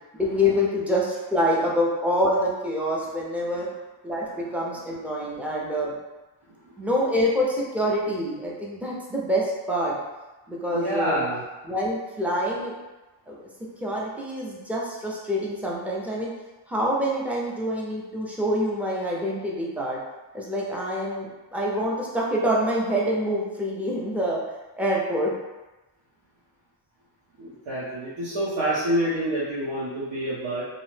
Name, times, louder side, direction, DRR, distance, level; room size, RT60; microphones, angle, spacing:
voice 1, 0.1-3.7 4.0-5.9 6.8-9.9 10.5-11.2 11.6-12.7 13.3-13.4 13.8-16.3 16.7-20.0 20.3-24.4 24.7-25.3, equal, 5° right, -4 dB, 0.4 m, -26 dB
voice 2, 10.7-11.4 27.4-30.6, right 1 dB, 80° right, -9 dB, 0.8 m, -27 dB
2.7 x 2.0 x 3.1 m, 1.1 s
cardioid pair, 120°, 50 cm